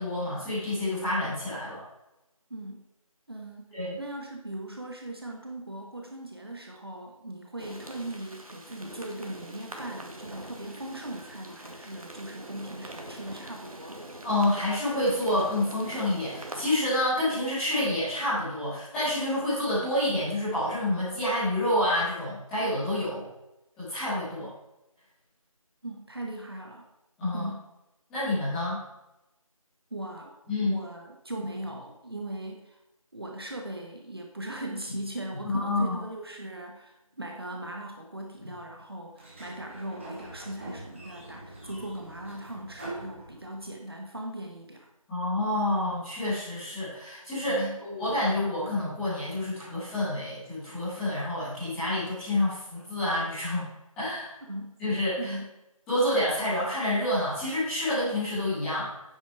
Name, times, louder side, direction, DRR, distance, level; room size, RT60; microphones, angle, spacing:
voice 1, 0.0-1.8 3.7-3.9 14.2-23.3 23.8-24.5 27.2-27.5 28.1-28.8 30.5-30.8 35.4-36.0 45.1-53.7 54.0-54.3 54.8-55.3 55.9-58.9, left 1 dB, ahead, -17 dB, 2.1 m, -28 dB
voice 2, 2.5-2.9 3.3-14.1 25.8-26.9 27.3-27.7 29.9-30.4 30.6-32.8 33.1-44.9 47.5-47.8 54.5-54.8 55.2-55.5, right 1 dB, 45° right, 1 dB, 1.4 m, -39 dB
sound 1, 7.6-16.7, right 1 dB, 75° right, 2.1 m, -43 dB
Sliding door, 39.1-43.8, right 1 dB, 20° right, 1.9 m, -43 dB
9.3 x 8.9 x 4.7 m, 0.93 s
figure-of-eight pair, 170°, 18 cm